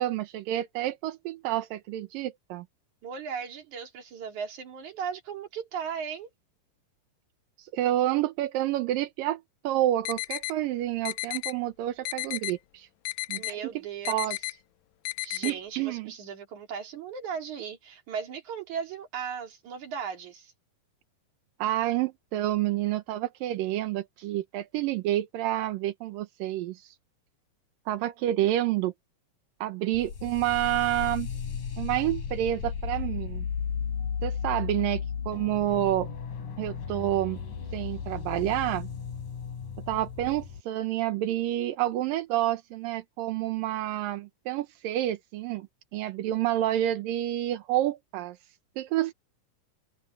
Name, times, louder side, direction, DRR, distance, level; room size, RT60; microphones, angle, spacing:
voice 1, 0.0-2.7 7.6-12.9 13.3-13.6 14.1-14.4 15.4-16.1 21.6-26.9 27.9-28.9 29.6-31.3 31.8-33.5 34.2-36.1 36.6-37.4 37.7-38.9 39.9-45.7 45.9-48.4 48.8-49.1, right 14 dB, 85° right, 2.7 m, -29 dB
voice 2, 3.0-6.3 13.4-14.4 15.2-20.5, right 7 dB, 60° right, 4.2 m, -37 dB
sound 1, 10.0-10.5 11.0-11.5 12.0-12.5 13.0-13.5 14.0-14.5 15.0-15.5, left 20 dB, 90° left, 1.7 m, -33 dB
sound 2, 29.9-40.6, left 6 dB, 70° left, 4.6 m, -35 dB
omnidirectional pair, 4.0 m